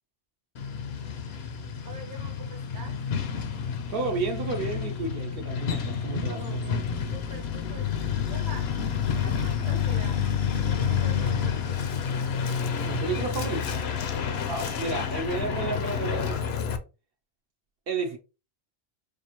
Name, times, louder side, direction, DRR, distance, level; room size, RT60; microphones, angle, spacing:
Truck, 0.6-16.8, left 7 dB, 70° left, 0.8 m, -29 dB
voice 1, 1.8-3.0 6.3-8.7 9.1-10.2 10.7-11.8 14.1-14.4, right 2 dB, 25° right, 0.7 m, -45 dB
voice 2, 3.9-6.6 9.4-9.9 12.8-13.8 14.5-16.8 17.9-18.2, right 4 dB, 65° right, 0.8 m, -32 dB
4.7 x 2.4 x 2.9 m
omnidirectional pair, 1.1 m